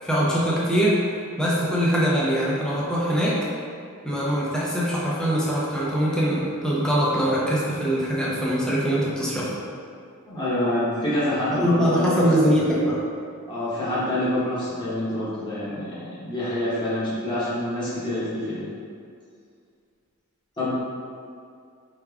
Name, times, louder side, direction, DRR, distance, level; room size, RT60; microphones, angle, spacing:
voice 1, 0.0-1.0 1.4-3.4 4.0-9.6 11.6-13.0, equal, 5° left, -7 dB, 0.6 m, -22 dB
voice 2, 10.3-12.2 13.5-18.7 20.6-20.7, left 1 dB, 20° left, -11 dB, 0.9 m, -26 dB
4.7 x 3.4 x 2.3 m, 2.3 s
head